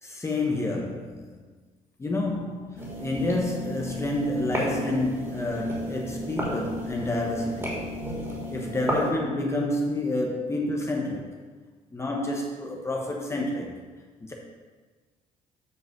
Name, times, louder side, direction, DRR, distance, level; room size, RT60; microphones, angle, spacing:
voice 1, 0.0-1.4 2.0-7.8 8.5-11.3 11.9-13.8 14.2-14.3, left 2 dB, 20° left, -1 dB, 1.0 m, -29 dB
sound 1, 2.8-9.1, equal, 20° right, 2.7 m, -32 dB
8.1 x 3.9 x 6.6 m, 1.4 s
cardioid pair, 100°, 15 cm